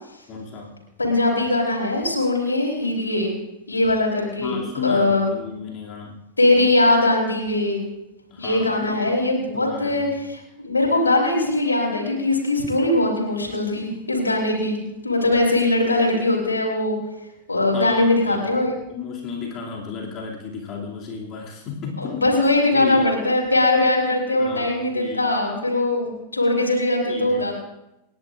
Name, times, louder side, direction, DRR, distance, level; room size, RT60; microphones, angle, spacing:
voice 1, 0.3-0.7 4.4-6.2 8.3-9.2 9.5-10.2 17.7-18.6 18.9-22.2 22.7-23.1 24.4-25.3 27.1-27.5, left 6 dB, 35° left, -2 dB, 2.5 m, -33 dB
voice 2, 1.0-3.3 3.7-5.3 6.4-7.8 8.4-14.8 15.0-17.0 17.5-18.7 22.0-27.6, left 2 dB, 80° left, -2 dB, 3.5 m, -21 dB
28.5 x 10.5 x 2.5 m, 0.91 s
figure-of-eight pair, 90°, 0 cm